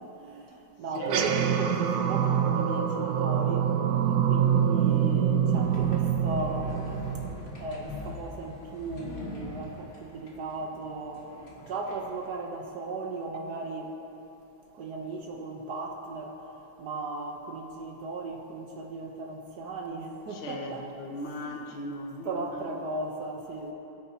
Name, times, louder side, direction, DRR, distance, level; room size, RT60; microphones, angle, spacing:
voice 1, 0.0-3.7 4.3-6.7 7.6-11.3 11.6-13.9 14.7-16.4 16.8-20.8 21.5-21.6 22.2-23.7, right 3 dB, 60° right, 1 dB, 1.2 m, -36 dB
sound 1, 1.0-7.7, right 8 dB, 80° right, 0.8 m, -25 dB
sound 2, 5.5-12.3, left 1 dB, 35° left, 1.4 m, -42 dB
voice 2, 20.3-22.7, left 1 dB, 85° left, 2 dB, 1.9 m, -38 dB
20.5 x 9.1 x 2.7 m, 3.0 s
omnidirectional pair, 2.3 m